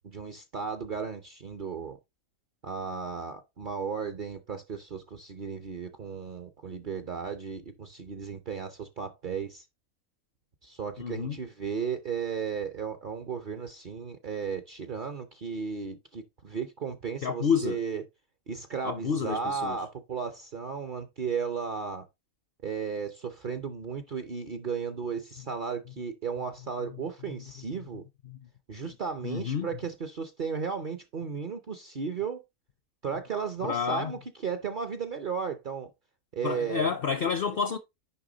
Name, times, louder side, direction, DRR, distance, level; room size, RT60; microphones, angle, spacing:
voice 1, 0.0-2.0 2.6-9.6 10.6-18.0 18.5-22.0 22.6-28.0 28.7-32.4 33.0-35.9 36.3-36.9, right 6 dB, 50° right, 0.6 m, -35 dB
voice 2, 11.0-11.4 17.2-17.8 18.8-19.8 27.3-27.4 27.8-27.9 28.3-28.4 29.2-29.7 33.6-34.1 36.4-37.8, left 6 dB, 60° left, 0.6 m, -29 dB
10.0 x 3.4 x 3.8 m
omnidirectional pair, 1.6 m